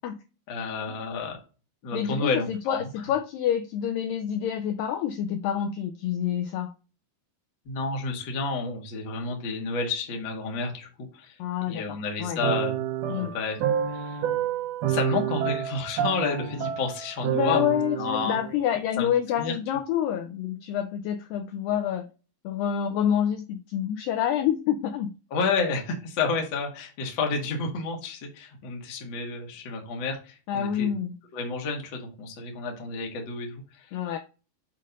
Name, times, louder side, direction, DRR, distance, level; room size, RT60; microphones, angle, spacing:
voice 1, 0.5-1.4 1.8-2.9 7.6-11.4 11.7-13.6 13.9-14.2 14.9-17.7 18.0-18.4 19.0-19.1 19.4-19.5 25.3-30.9 31.3-33.9, left 4 dB, 60° left, 2 dB, 1.2 m, -30 dB
voice 2, 1.9-6.7 11.4-12.4 13.1-13.4 17.3-22.1 22.4-25.2 30.5-31.2 33.9-34.2, left 9 dB, 85° left, 7 dB, 2.0 m, -27 dB
sound 1, 12.4-18.8, right 9 dB, 80° right, 2.7 m, -29 dB
7.4 x 2.5 x 5.2 m, 0.33 s
omnidirectional pair, 4.4 m